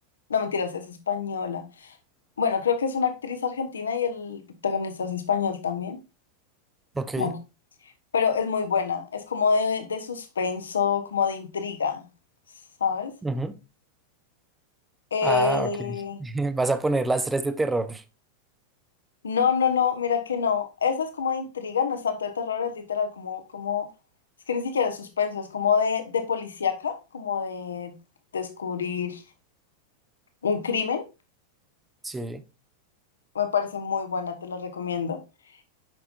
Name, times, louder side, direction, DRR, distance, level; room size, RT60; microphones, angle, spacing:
voice 1, 0.3-1.9 2.4-6.0 7.2-7.4 8.1-12.1 12.8-13.1 15.1-16.2 19.2-23.9 24.5-27.9 28.3-29.2 30.4-31.0 33.3-35.2, left 6 dB, 70° left, 1.1 m, -27 dB
voice 2, 6.9-7.3 13.2-13.5 15.2-18.0 32.0-32.4, right 2 dB, 10° right, 0.7 m, -27 dB
9.1 x 5.8 x 2.5 m
figure-of-eight pair, 90°, 0 cm